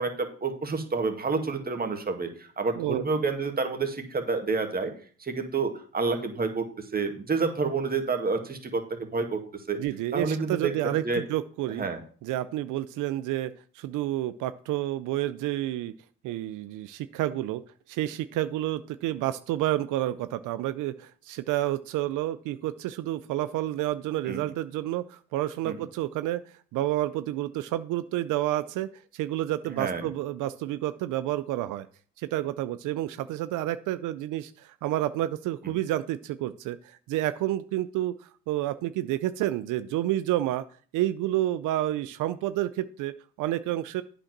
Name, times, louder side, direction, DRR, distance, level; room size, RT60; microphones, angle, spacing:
voice 1, 0.0-4.9 5.2-9.8 10.1-11.2 11.7-12.0 24.3-24.5 25.7-25.8 29.8-30.1 35.6-35.7, right 4 dB, 30° right, 5 dB, 1.8 m, -29 dB
voice 2, 9.8-11.8 12.2-15.9 16.2-17.6 17.9-26.4 26.7-31.9 32.2-40.6 40.9-44.0, right 14 dB, 90° right, 13 dB, 0.5 m, -29 dB
8.7 x 5.2 x 5.9 m, 0.43 s
cardioid pair, 90°, 30 cm